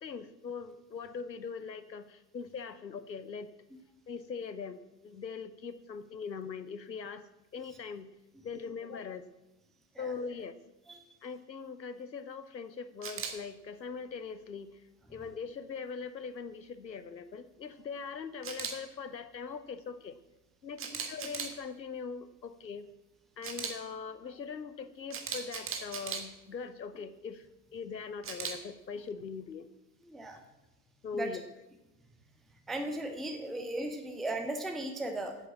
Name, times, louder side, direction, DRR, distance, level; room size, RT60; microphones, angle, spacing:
voice 1, 0.0-3.5 4.1-7.2 7.5-8.1 8.4-9.2 10.0-10.6 11.2-14.8 15.1-20.2 20.6-22.9 23.4-27.5 27.7-29.7 31.0-31.4, left 5 dB, 85° left, 13 dB, 0.9 m, -41 dB
Camera, 13.0-13.3 18.4-18.7 20.8-21.5 23.4-23.7 25.1-26.2 28.2-28.5, right 6 dB, 25° right, 1.7 m, -37 dB
voice 2, 30.0-30.4 31.1-31.3 32.7-35.4, right 1 dB, ahead, 5 dB, 0.3 m, -36 dB
9.1 x 7.4 x 7.3 m, 1.1 s
figure-of-eight pair, 80°, 50 cm